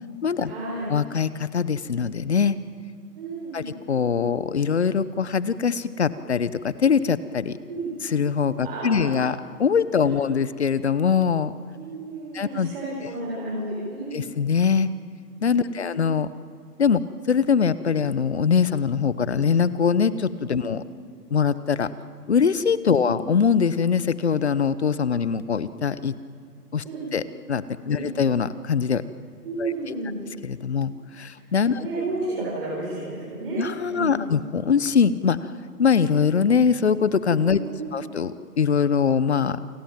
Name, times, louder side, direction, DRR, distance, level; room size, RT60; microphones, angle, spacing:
voice 1, 0.4-0.9 3.1-3.7 7.7-7.9 8.6-9.2 9.9-10.3 11.7-14.2 15.6-15.9 20.5-20.7 22.9-23.1 26.8-27.1 27.9-28.1 29.4-30.2 31.7-34.4 37.5-38.0, right 2 dB, 35° right, -7 dB, 7.0 m, -32 dB
voice 2, 0.9-2.6 3.5-3.6 3.9-7.6 8.1-11.5 12.3-12.7 14.1-14.9 15.4-16.3 16.8-17.0 17.3-20.8 21.3-21.9 22.3-26.1 26.7-26.8 27.1-27.2 27.5-29.0 29.6-29.7 30.4-30.9 31.2-31.9 33.6-35.4 35.8-37.6 37.9-38.3 38.6-39.6, left 6 dB, 40° left, 16 dB, 0.9 m, -22 dB
29.0 x 19.0 x 9.0 m, 2.1 s
hypercardioid pair, 170°, 48 cm